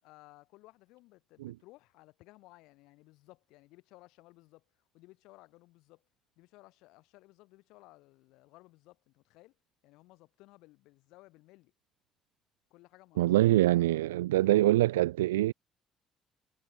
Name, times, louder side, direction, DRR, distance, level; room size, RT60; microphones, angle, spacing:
voice 1, 0.0-6.0 6.4-9.5 9.8-11.7 12.7-14.8, left 20 dB, 75° left, 7.4 m, -58 dB
voice 2, 13.2-15.5, right 16 dB, 85° right, 0.7 m, -24 dB
hypercardioid pair, 50°, 0 cm